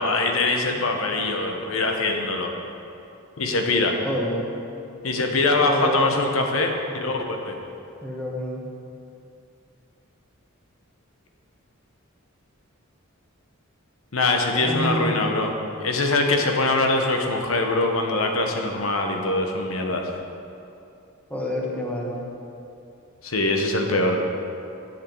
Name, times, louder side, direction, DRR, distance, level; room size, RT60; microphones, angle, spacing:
voice 1, 0.0-2.5 3.4-4.0 5.0-7.6 14.1-15.5 15.8-20.1 23.2-24.2, left 2 dB, 75° left, 3 dB, 1.1 m, -23 dB
voice 2, 4.0-4.5 5.7-6.0 8.0-8.7 14.5-15.3 21.3-22.2, equal, 5° left, -3 dB, 1.4 m, -28 dB
10.0 x 7.9 x 4.6 m, 2.7 s
head